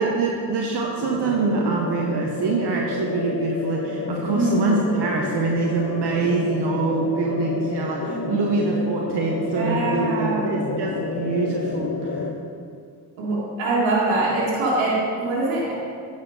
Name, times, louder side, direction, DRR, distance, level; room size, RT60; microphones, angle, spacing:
voice 1, 0.0-12.3, right 4 dB, 60° right, 0 dB, 0.9 m, -24 dB
sound 1, 1.0-12.3, left 4 dB, 30° left, 0.8 m, -30 dB
voice 2, 4.3-4.7 8.1-8.5 9.5-10.6 13.2-15.7, right 2 dB, 80° right, -7 dB, 1.8 m, -24 dB
9.9 x 4.4 x 5.1 m, 2.3 s
hypercardioid pair, 45°, 46 cm